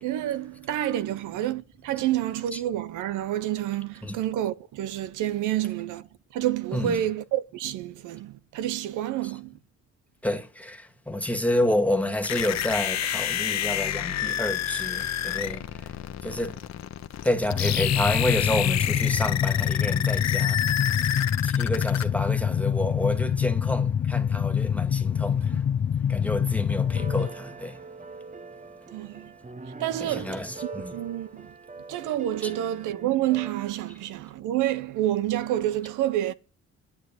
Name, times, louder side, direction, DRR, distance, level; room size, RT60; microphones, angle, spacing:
voice 1, 0.0-6.1 6.3-9.5 28.9-29.3 29.8-31.5 31.9-36.3, right 12 dB, 90° right, 0.9 m, -28 dB
voice 2, 10.2-16.7 17.2-21.0 21.4-27.9 30.0-31.0 32.4-32.5, left 1 dB, 5° left, 2.1 m, -29 dB
sound 1, 12.2-22.0, left 11 dB, 60° left, 1.1 m, -29 dB
sound 2, 17.5-27.3, left 8 dB, 40° left, 0.7 m, -25 dB
sound 3, 26.8-33.5, right 4 dB, 25° right, 0.9 m, -43 dB
10.5 x 9.2 x 7.8 m
cardioid pair, 90°, 30 cm